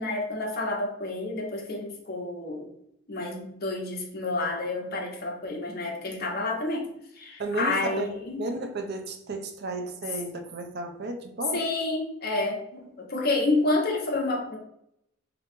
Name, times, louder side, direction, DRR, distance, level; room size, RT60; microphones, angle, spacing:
voice 1, 0.0-2.7 3.1-6.9 7.2-8.5 11.5-14.6, left 2 dB, 50° left, 0 dB, 0.9 m, -29 dB
voice 2, 7.4-11.6, right 2 dB, 55° right, 6 dB, 0.5 m, -33 dB
3.7 x 3.0 x 3.5 m, 0.75 s
head